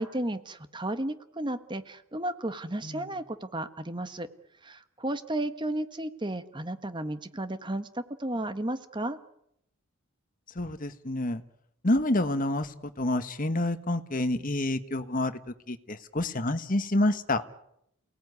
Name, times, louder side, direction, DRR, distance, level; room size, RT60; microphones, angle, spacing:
voice 1, 0.0-4.3 4.6-9.2, right 1 dB, 20° right, 11 dB, 1.3 m, -33 dB
voice 2, 10.5-11.4 11.8-15.3 15.7-17.4, left 1 dB, 40° left, 9 dB, 1.5 m, -28 dB
29.0 x 18.5 x 9.7 m, 0.79 s
head